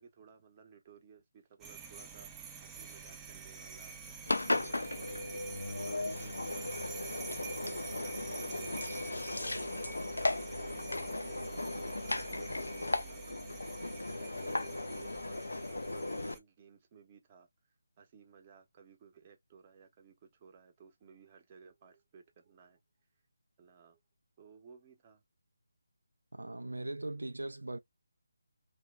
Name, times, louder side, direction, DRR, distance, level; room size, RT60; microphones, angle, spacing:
voice 1, 0.0-7.2 7.9-13.2 14.1-17.5 18.0-22.8 23.6-24.0 24.4-25.2, right 6 dB, 30° right, 0.9 m, -58 dB
sound 1, 1.6-16.4, right 5 dB, 10° right, 0.5 m, -48 dB
Engine, 4.3-16.3, left 2 dB, 85° left, 0.5 m, -36 dB
voice 2, 26.3-27.8, right 2 dB, 85° right, 0.4 m, -40 dB
2.9 x 2.2 x 3.5 m
figure-of-eight pair, 155°, 0 cm